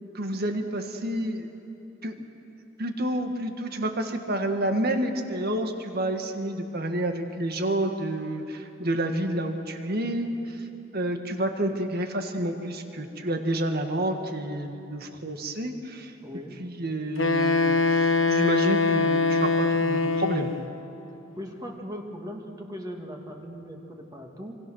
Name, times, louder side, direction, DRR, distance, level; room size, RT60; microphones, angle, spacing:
voice 1, 0.0-1.5 2.0-2.1 2.8-10.6 10.9-16.1 16.6-20.5, right 1 dB, 50° right, 6 dB, 1.7 m, -29 dB
voice 2, 16.2-16.6 21.4-24.6, equal, 20° right, 1 dB, 2.3 m, -39 dB
Wind instrument woodwind instrument, 17.2-20.6, left 3 dB, 80° left, 1.1 m, -23 dB
26.5 x 25.0 x 6.4 m, 3.0 s
head